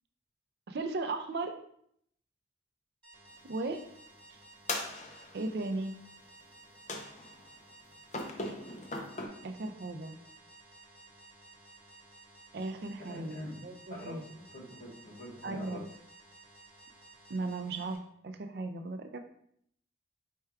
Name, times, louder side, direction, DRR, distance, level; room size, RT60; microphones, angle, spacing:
voice 1, 0.7-1.6 3.5-3.8 5.3-5.9 9.4-10.2 12.5-14.2 15.4-15.8 17.3-19.2, right 3 dB, 55° right, 7 dB, 0.4 m, -36 dB
sound 1, 3.0-18.0, right 2 dB, 25° right, 1.0 m, -56 dB
sound 2, 4.7-5.5 6.9-7.5 8.1-9.3, left 2 dB, 40° left, 0.5 m, -38 dB
voice 2, 13.1-13.5 13.9-15.8, equal, 60° left, -5 dB, 1.5 m, -44 dB
4.5 x 2.3 x 4.6 m, 0.68 s
head